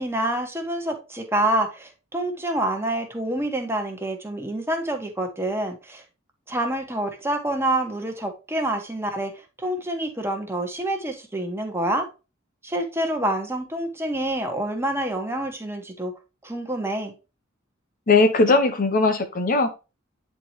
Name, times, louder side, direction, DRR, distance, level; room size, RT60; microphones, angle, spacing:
voice 1, 0.0-6.0 6.5-12.1 12.6-16.1 16.4-17.1, right 1 dB, 10° right, 1.6 m, -27 dB
voice 2, 18.1-19.7, left 3 dB, 45° left, 0.9 m, -19 dB
9.6 x 4.5 x 3.1 m
head